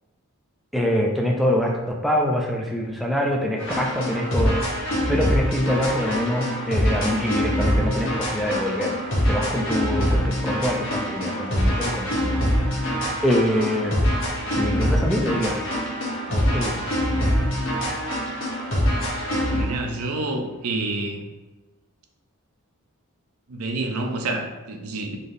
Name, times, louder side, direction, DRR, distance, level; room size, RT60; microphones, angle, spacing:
voice 1, 0.7-9.0 9.3-12.4 13.2-14.0 14.5-15.6 16.3-16.8, equal, ahead, -1 dB, 0.4 m, -25 dB
sound 1, 3.6-19.7, equal, 60° left, 1.2 m, -24 dB
voice 2, 19.5-21.2 23.5-25.2, right 2 dB, 80° right, 4 dB, 0.6 m, -28 dB
4.0 x 3.3 x 2.6 m, 1.2 s
head